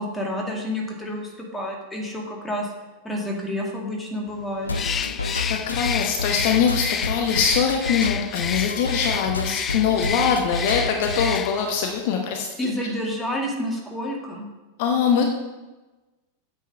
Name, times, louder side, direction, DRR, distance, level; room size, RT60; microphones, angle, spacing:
voice 1, 0.0-2.7 3.0-4.7 12.6-14.5, left 1 dB, 5° left, -1 dB, 2.2 m, -29 dB
sound 1, 4.7-11.4, left 3 dB, 75° left, 0.7 m, -29 dB
Bird, 4.7-11.8, left 8 dB, 25° left, 0.3 m, -30 dB
voice 2, 5.5-12.5 14.8-15.2, left 6 dB, 50° left, 3 dB, 1.1 m, -23 dB
8.9 x 7.2 x 5.5 m, 1.1 s
figure-of-eight pair, 90°, 0 cm